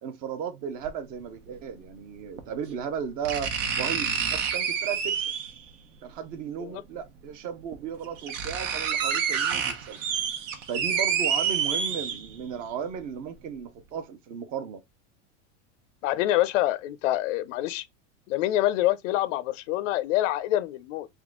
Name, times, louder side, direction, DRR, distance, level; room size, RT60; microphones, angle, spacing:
voice 1, 0.0-5.3 6.0-10.0 10.7-14.8, right 7 dB, 25° right, 0.4 m, -35 dB
sound 1, 0.8-0.9 2.4-2.5 3.2-5.6 7.0-7.1 7.7-7.8 8.0-12.5 12.9-13.0, right 7 dB, 85° right, 1.1 m, -28 dB
voice 2, 16.0-17.9 18.3-21.1, left 14 dB, 80° left, 0.5 m, -26 dB
3.5 x 3.1 x 3.6 m
supercardioid pair, 165°, 37 cm